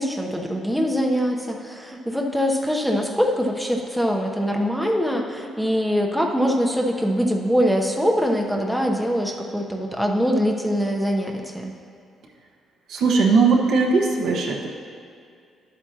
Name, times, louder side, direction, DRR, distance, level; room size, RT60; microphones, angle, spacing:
voice 1, 0.0-11.7, equal, ahead, 0 dB, 0.9 m, -23 dB
voice 2, 12.9-14.7, right 4 dB, 75° right, -1 dB, 1.2 m, -19 dB
11.0 x 8.3 x 2.9 m, 2.3 s
cardioid pair, 90°, 0 cm